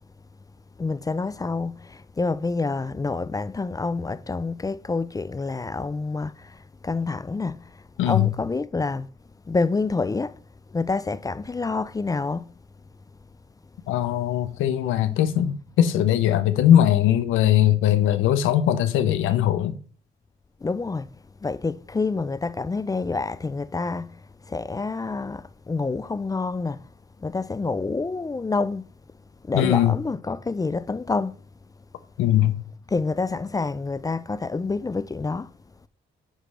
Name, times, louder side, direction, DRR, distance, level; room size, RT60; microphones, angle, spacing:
voice 1, 0.8-6.6 6.8-7.6 8.0-9.1 9.5-10.4 10.7-12.5 20.6-21.1 21.4-24.2 24.5-26.8 27.2-28.9 29.5-31.4 32.9-35.5, left 3 dB, 20° left, 0.4 m, -27 dB
voice 2, 8.0-8.3 13.9-19.8 29.5-30.0 32.2-32.6, left 11 dB, 90° left, 0.8 m, -20 dB
7.7 x 3.3 x 6.1 m
cardioid pair, 90°, 20 cm